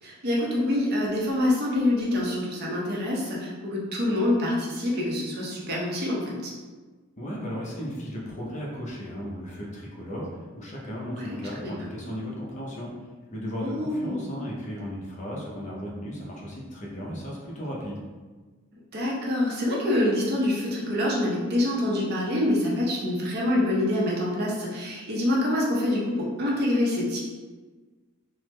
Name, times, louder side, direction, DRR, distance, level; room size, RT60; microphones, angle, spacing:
voice 1, 0.0-6.5 11.1-11.7 13.6-14.2 18.9-27.2, left 1 dB, 45° right, -4 dB, 0.6 m, -26 dB
voice 2, 7.2-12.9 13.3-18.0, equal, 30° left, -4 dB, 0.5 m, -35 dB
3.2 x 2.0 x 3.1 m, 1.3 s
head